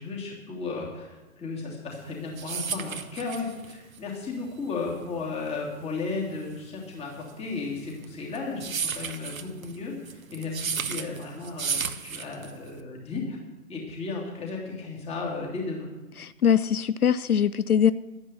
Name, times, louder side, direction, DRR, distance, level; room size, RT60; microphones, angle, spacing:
voice 1, 0.0-13.4 13.7-15.9, left 3 dB, 15° left, 2.8 m, -34 dB
sound 1, 2.0-12.8, right 6 dB, 70° right, 1.2 m, -34 dB
voice 2, 16.2-17.9, left 8 dB, 85° left, 0.6 m, -22 dB
11.5 x 9.9 x 7.1 m
figure-of-eight pair, 125°, 43 cm